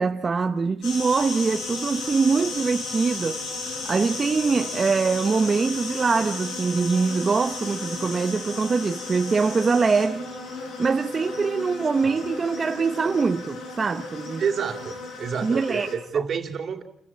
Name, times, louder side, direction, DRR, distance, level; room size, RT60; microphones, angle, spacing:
voice 1, 0.0-3.4 3.8-10.3 10.8-14.4 15.4-15.9, right 4 dB, 35° right, 0.8 m, -23 dB
sound 1, 0.8-15.9, left 3 dB, 90° left, 6.6 m, -34 dB
voice 2, 14.4-16.8, right 6 dB, 55° right, 3.0 m, -29 dB
28.5 x 15.0 x 8.6 m
cardioid pair, 90°, 0 cm